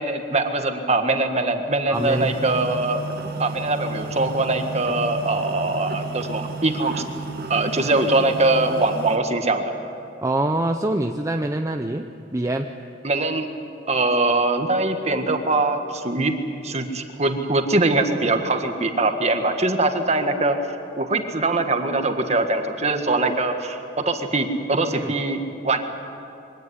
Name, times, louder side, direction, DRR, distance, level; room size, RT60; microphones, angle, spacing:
voice 1, 0.0-3.0 3.4-7.0 7.5-9.7 13.0-13.5 13.9-16.3 16.6-20.6 21.0-23.8 24.0-25.8, right 2 dB, 35° right, 6 dB, 1.7 m, -22 dB
voice 2, 1.9-2.4 10.2-12.8 24.9-25.1, right 1 dB, 15° right, 5 dB, 0.7 m, -25 dB
sound 1, 1.9-9.2, right 3 dB, 55° right, 2.0 m, -33 dB
23.5 x 17.5 x 9.8 m, 2.7 s
head